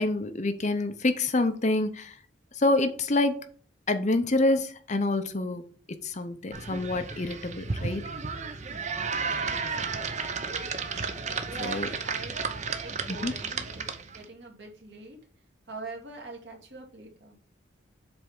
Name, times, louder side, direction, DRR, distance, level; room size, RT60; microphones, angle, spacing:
voice 1, 0.0-2.1 2.6-3.5 3.9-8.0 11.6-11.9 13.1-13.3, left 2 dB, 35° left, 0.7 m, -27 dB
sound 1, 6.5-14.2, right 5 dB, 35° right, 0.7 m, -33 dB
voice 2, 9.5-10.5 11.4-12.4 12.8-15.2 15.7-17.4, right 2 dB, 65° right, 2.2 m, -43 dB
7.8 x 3.5 x 5.4 m
head